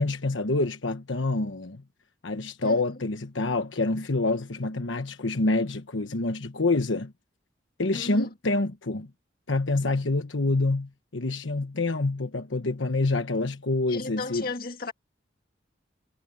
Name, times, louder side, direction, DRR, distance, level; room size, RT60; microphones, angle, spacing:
voice 1, 0.0-1.8 2.2-7.1 7.8-9.1 9.5-14.5, left 2 dB, 80° left, 1.2 m, -27 dB
voice 2, 7.9-8.3 13.9-14.9, left 3 dB, 50° left, 2.0 m, -35 dB
head